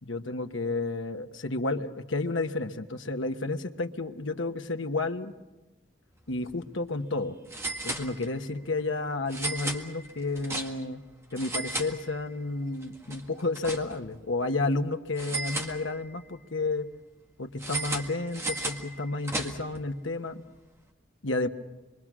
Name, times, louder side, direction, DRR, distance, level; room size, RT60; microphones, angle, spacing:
voice 1, 0.0-5.3 6.3-7.4 7.8-11.0 11.3-16.9 17.4-20.4 21.2-21.5, left 2 dB, 85° left, 6 dB, 1.3 m, -31 dB
sound 1, 6.3-6.5 6.8-6.9 7.5-8.5 9.3-11.0 11.3-12.5 12.8-14.2 15.2-16.3 17.6-19.8, right 2 dB, 15° right, 1.8 m, -35 dB
26.5 x 23.5 x 6.2 m, 1.1 s
head